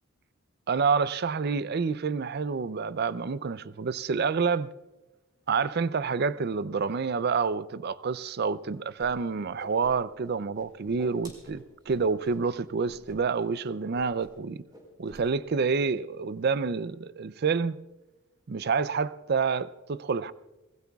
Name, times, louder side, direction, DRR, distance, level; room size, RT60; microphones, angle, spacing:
voice 1, 0.7-4.7 5.5-14.6 15.0-17.8 18.5-20.3, right 5 dB, 50° right, 0.4 m, -28 dB
Whoosh swoosh swish, 9.0-9.1 9.4-10.3 10.5-12.4 12.8-13.2 13.4-13.6 13.9-14.4 14.7-15.2, equal, 20° right, 4.7 m, -49 dB
28.0 x 20.0 x 2.3 m
head